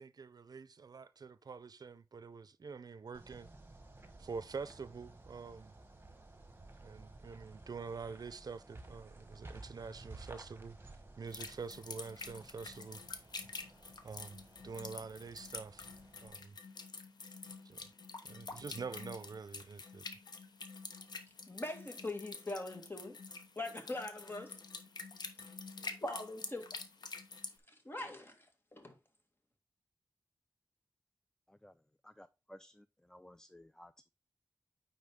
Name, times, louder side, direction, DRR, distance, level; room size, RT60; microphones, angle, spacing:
voice 1, 0.0-3.5 4.2-5.7 6.8-10.8 11.2-13.0 14.0-15.9 16.2-16.6 17.6-17.8 18.3-20.2, right 5 dB, 65° right, 0.5 m, -46 dB
sound 1, 3.1-16.3, right 2 dB, 30° right, 1.3 m, -55 dB
sound 2, 11.3-27.6, left 4 dB, 85° left, 0.9 m, -48 dB
voice 2, 21.5-23.2 23.6-24.6 25.8-26.7 27.9-28.5 28.7-29.0, left 2 dB, 30° left, 1.8 m, -42 dB
voice 3, 32.2-32.7 33.0-34.1, left 1 dB, 10° left, 0.4 m, -56 dB
9.4 x 4.0 x 3.6 m
wide cardioid pair, 70°, 7 cm